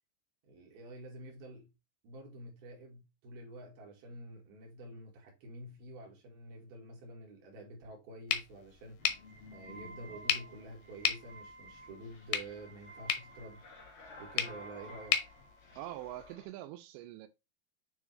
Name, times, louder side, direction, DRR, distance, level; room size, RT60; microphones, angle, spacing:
voice 1, 0.4-1.7 2.0-9.0 9.5-13.6 14.2-15.2, right 1 dB, 60° right, 3.3 m, -49 dB
sound 1, 8.3-16.3, left 10 dB, 80° left, 2.0 m, -38 dB
sound 2, 9.0-16.5, equal, 55° left, 1.3 m, -52 dB
voice 2, 15.8-17.3, right 14 dB, 85° right, 2.6 m, -44 dB
8.8 x 3.4 x 3.2 m
omnidirectional pair, 5.4 m